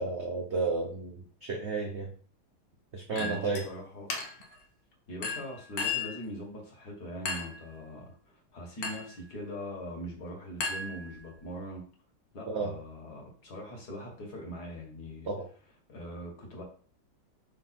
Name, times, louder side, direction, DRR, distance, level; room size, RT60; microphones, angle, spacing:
voice 1, 0.0-2.1 2.9-3.6 12.5-12.7 15.3-15.5, right 3 dB, 55° right, 1 dB, 0.7 m, -32 dB
voice 2, 3.1-4.1 5.1-11.9 12.3-15.3 15.9-16.6, equal, 50° left, 0 dB, 2.1 m, -42 dB
Chink clink, 3.2-3.7 4.1-4.5 5.2-6.2 7.3-7.6 8.8-9.2 10.6-11.4, left 4 dB, 80° left, 1.9 m, -35 dB
5.6 x 4.0 x 4.3 m, 0.43 s
omnidirectional pair, 2.2 m